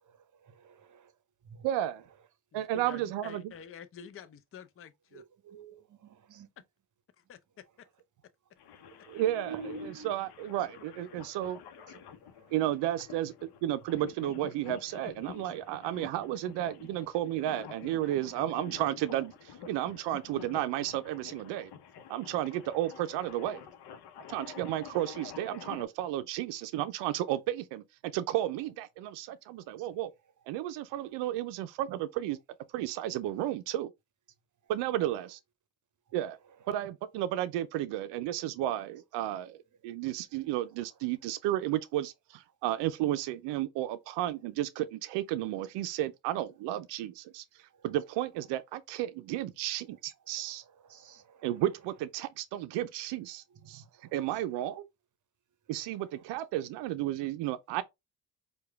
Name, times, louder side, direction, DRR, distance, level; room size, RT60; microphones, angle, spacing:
voice 1, 0.6-1.1 1.5-1.6 5.5-5.7 6.0-6.5 9.1-10.1 11.9-12.0 50.9-51.5 53.7-54.1, right 3 dB, 45° right, 0.8 m, -46 dB
voice 2, 1.6-2.0 2.5-3.5 9.1-11.6 12.5-21.7 22.1-23.6 24.3-30.1 30.5-32.4 32.7-33.9 34.7-35.4 36.1-36.4 36.7-39.6 39.8-50.6 51.4-53.8 54.1-54.9 55.7-57.8, right 13 dB, 70° right, 0.5 m, -33 dB
voice 3, 2.8-5.2 7.3-7.6, left 8 dB, 30° left, 0.6 m, -48 dB
sound 1, 8.6-25.8, left 8 dB, 60° left, 0.8 m, -49 dB
4.6 x 2.3 x 3.4 m
hypercardioid pair, 55°, 44 cm